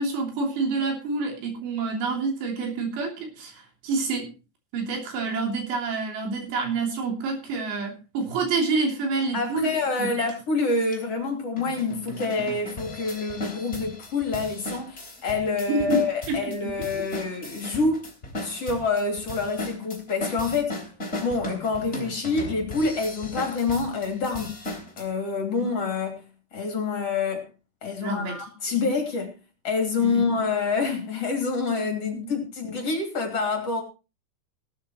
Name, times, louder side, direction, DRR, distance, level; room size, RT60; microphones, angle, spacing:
voice 1, 0.0-4.3 4.7-9.7 10.0-10.3 15.7-16.0 16.3-16.7 25.6-25.7 28.0-28.4 28.7-28.9 30.0-30.3 32.1-32.4, right 3 dB, 85° right, 5.5 m, -28 dB
voice 2, 9.3-18.0 18.4-20.8 21.2-24.6 25.0-26.3 26.5-27.5 27.8-29.3 29.6-33.8, left 4 dB, 40° left, 3.6 m, -27 dB
sound 1, 10.3-10.4 10.9-11.0 11.6-25.0, left 1 dB, 20° left, 3.1 m, -37 dB
17.5 x 13.0 x 3.1 m
omnidirectional pair, 4.9 m